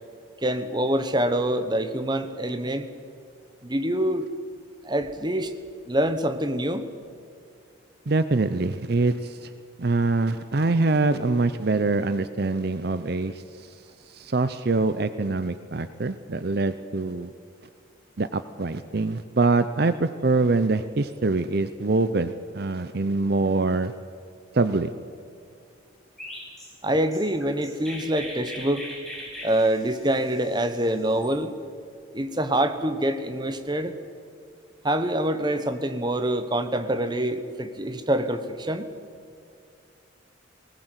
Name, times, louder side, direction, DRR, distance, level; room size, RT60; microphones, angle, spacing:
voice 1, 0.4-2.8 3.6-4.3 4.8-5.5 5.9-6.9 26.8-28.8 29.4-31.5 32.1-33.9 34.8-38.9, right 1 dB, 20° right, 9 dB, 1.1 m, -25 dB
voice 2, 8.1-9.5 9.8-13.3 14.1-17.3 18.2-23.9 24.5-24.9, right 3 dB, 50° right, 12 dB, 0.6 m, -24 dB
Chirp tweet, 26.2-31.3, left 1 dB, ahead, 5.6 m, -40 dB
19.5 x 18.5 x 8.1 m, 2.4 s
head